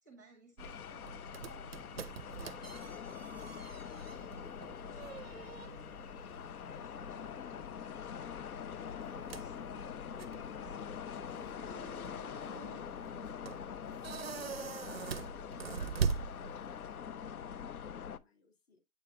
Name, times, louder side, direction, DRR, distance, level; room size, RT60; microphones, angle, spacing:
voice 1, 0.0-3.8 4.1-13.2 13.8-14.6, right 4 dB, 15° right, 0.7 m, -61 dB
sound 1, 0.6-18.2, left 8 dB, 80° left, 0.7 m, -44 dB
sound 2, 0.6-17.0, right 6 dB, 45° right, 0.4 m, -43 dB
voice 2, 15.2-18.8, left 4 dB, 45° left, 2.3 m, -68 dB
8.2 x 5.0 x 2.4 m
hypercardioid pair, 165°, 43 cm